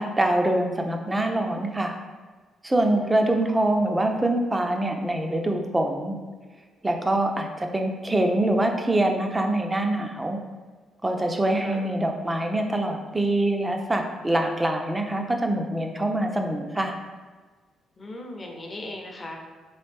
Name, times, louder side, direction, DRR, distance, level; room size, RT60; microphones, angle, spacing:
voice 1, 0.0-2.0 2.6-6.2 6.8-10.4 11.0-17.0, right 1 dB, 15° right, 3 dB, 0.5 m, -24 dB
voice 2, 2.9-3.2 11.5-11.8 18.0-19.4, left 1 dB, 30° left, 1 dB, 0.7 m, -38 dB
3.7 x 3.1 x 3.3 m, 1.4 s
cardioid pair, 90°, 0 cm